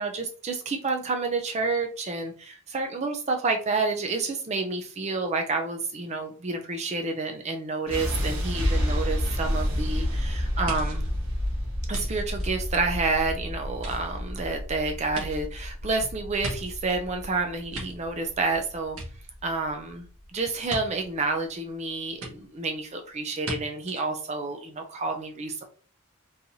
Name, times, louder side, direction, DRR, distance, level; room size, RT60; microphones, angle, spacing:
voice 1, 0.0-11.1 11.9-19.0 19.4-20.1 20.3-25.6, right 3 dB, 30° right, 5 dB, 0.4 m, -29 dB
sound 1, 7.9-19.9, equal, 60° right, 1.8 m, -30 dB
sound 2, 10.6-13.2 13.7-17.0 17.5-18.5 18.8-19.7 20.7-20.8 22.2-22.3 23.4-23.6 23.9-24.0, right 1 dB, 80° right, 1.3 m, -39 dB
3.9 x 2.9 x 2.6 m, 0.41 s
head